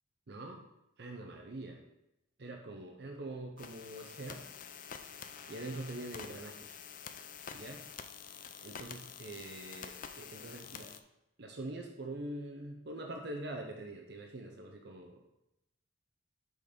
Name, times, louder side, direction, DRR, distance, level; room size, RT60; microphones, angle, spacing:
voice 1, 0.3-0.7 1.0-1.8 2.4-4.5 5.5-6.8 7.5-7.8 8.6-10.9 11.4-15.2, right 1 dB, 55° right, 2 dB, 0.7 m, -44 dB
sound 1, 3.6-11.0, left 7 dB, 40° left, 0.4 m, -48 dB
6.3 x 5.2 x 5.1 m, 0.88 s
head